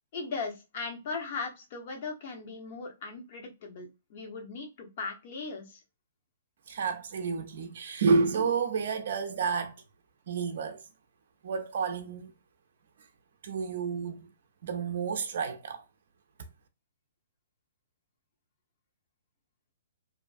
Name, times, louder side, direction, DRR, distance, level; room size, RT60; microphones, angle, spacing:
voice 1, 0.1-5.8, left 4 dB, 50° left, 0.9 m, -38 dB
voice 2, 6.7-9.8 10.3-10.8 11.4-12.3 13.4-14.3 14.6-15.8, right 5 dB, 60° right, 0.4 m, -30 dB
2.5 x 2.2 x 2.4 m
hypercardioid pair, 125°, 0 cm